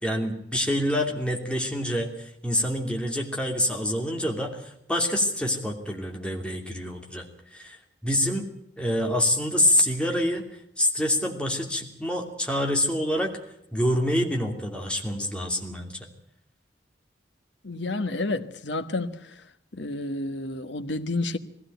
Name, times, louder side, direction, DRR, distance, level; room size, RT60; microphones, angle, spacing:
voice 1, 0.0-7.2 7.5-7.8 8.0-8.5 8.8-10.4 10.8-13.3 13.7-16.0, left 1 dB, 5° left, 2.8 m, -26 dB
voice 2, 17.6-19.4 19.7-21.4, left 2 dB, 75° left, 1.4 m, -30 dB
20.5 x 16.0 x 9.2 m
head